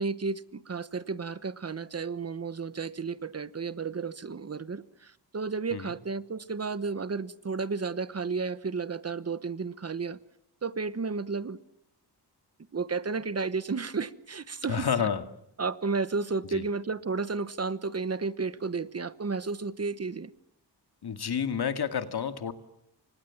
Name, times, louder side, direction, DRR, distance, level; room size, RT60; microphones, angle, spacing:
voice 1, 0.0-10.2 10.6-11.6 12.7-14.9 15.6-20.3, right 4 dB, 35° right, 15 dB, 1.1 m, -32 dB
voice 2, 14.7-15.2 16.5-16.6 21.0-22.5, left 7 dB, 65° left, 9 dB, 2.3 m, -29 dB
30.0 x 25.0 x 7.3 m, 0.77 s
wide cardioid pair, 160°, 42 cm